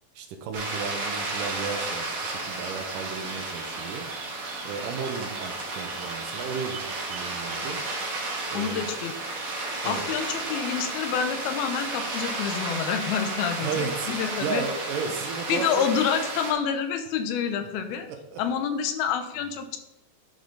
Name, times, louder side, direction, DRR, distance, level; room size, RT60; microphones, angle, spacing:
voice 1, 0.2-4.1 4.6-7.8 8.5-8.9 9.8-10.0 13.6-14.1 14.4-15.9 18.1-18.4, right 5 dB, 75° right, 5 dB, 2.3 m, -34 dB
sound 1, 0.5-16.5, right 2 dB, 55° right, 2.8 m, -33 dB
voice 2, 8.5-9.1 9.9-14.6 15.5-18.1 18.4-19.8, left 7 dB, 85° left, 8 dB, 2.7 m, -28 dB
11.0 x 5.0 x 3.9 m, 0.89 s
omnidirectional pair, 4.3 m